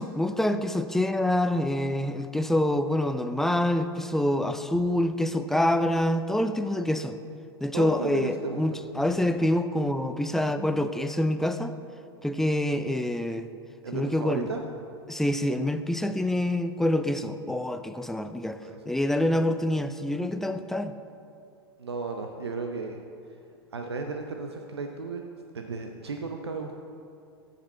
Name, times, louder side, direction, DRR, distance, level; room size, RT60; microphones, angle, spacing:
voice 1, 0.0-7.2 7.6-11.7 12.2-13.5 13.9-14.5 15.1-18.6 18.9-21.0, left 1 dB, 5° left, 10 dB, 0.4 m, -26 dB
voice 2, 7.7-8.6 9.1-9.2 13.8-14.6 18.6-18.8 21.8-23.0 23.7-25.2 25.5-26.8, right 4 dB, 85° right, 4 dB, 0.6 m, -34 dB
13.0 x 5.1 x 4.4 m, 2.4 s
figure-of-eight pair, 90°, 13 cm